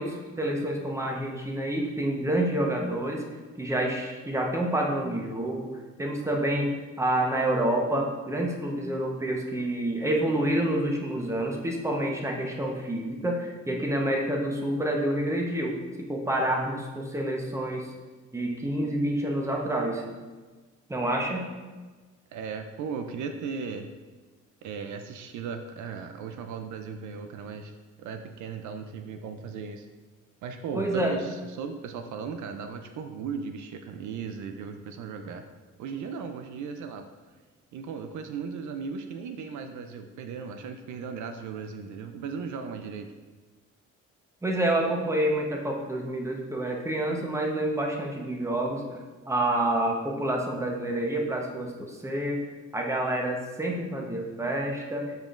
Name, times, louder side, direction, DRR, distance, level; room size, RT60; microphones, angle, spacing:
voice 1, 0.0-3.2 3.6-5.7 6.0-17.9 18.3-20.0 20.9-21.4 30.7-31.2 44.4-49.0 49.3-52.4 52.7-55.1, right 1 dB, 10° right, 0 dB, 1.0 m, -28 dB
voice 2, 22.3-23.9 24.6-29.9 30.4-35.4 35.8-37.1 37.7-43.1, right 5 dB, 75° right, 7 dB, 0.5 m, -37 dB
7.4 x 5.0 x 2.5 m, 1.3 s
cardioid pair, 90°, 30 cm